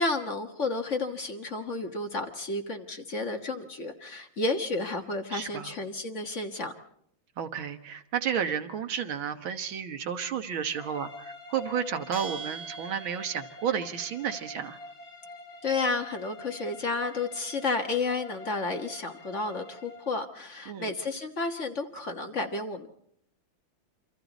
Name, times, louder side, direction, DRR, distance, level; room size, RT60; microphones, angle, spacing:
voice 1, 0.0-6.7 15.6-22.9, left 3 dB, 40° left, 4 dB, 1.6 m, -31 dB
voice 2, 5.3-5.7 7.4-14.8 20.7-20.9, right 8 dB, 80° right, 8 dB, 2.1 m, -32 dB
sound 1, 10.7-20.2, left 2 dB, 75° left, 7.7 m, -46 dB
Bell, 12.1-13.7, right 6 dB, 60° right, 2.7 m, -42 dB
28.0 x 25.5 x 4.1 m, 0.71 s
omnidirectional pair, 2.2 m